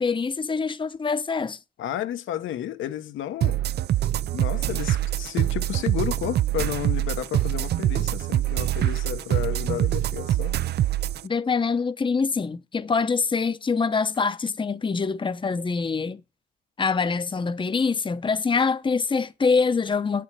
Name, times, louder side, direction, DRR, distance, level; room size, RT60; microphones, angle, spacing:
voice 1, 0.0-1.6 11.2-16.2 16.8-20.2, left 5 dB, 25° left, 0.9 m, -25 dB
voice 2, 1.8-3.6 4.3-10.5, left 11 dB, 80° left, 1.2 m, -32 dB
sound 1, 3.4-11.2, right 12 dB, 55° right, 0.4 m, -24 dB
8.7 x 6.7 x 4.6 m
cardioid pair, 90°, 20 cm